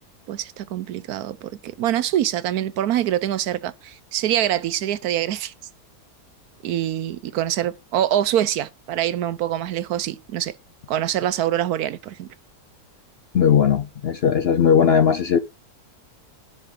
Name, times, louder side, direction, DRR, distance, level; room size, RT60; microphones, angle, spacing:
voice 1, 0.3-5.5 6.6-10.6 10.9-12.3, right 11 dB, 75° right, 1.1 m, -25 dB
voice 2, 13.3-15.4, left 7 dB, 65° left, 0.6 m, -18 dB
10.5 x 5.9 x 4.7 m
omnidirectional pair, 1.7 m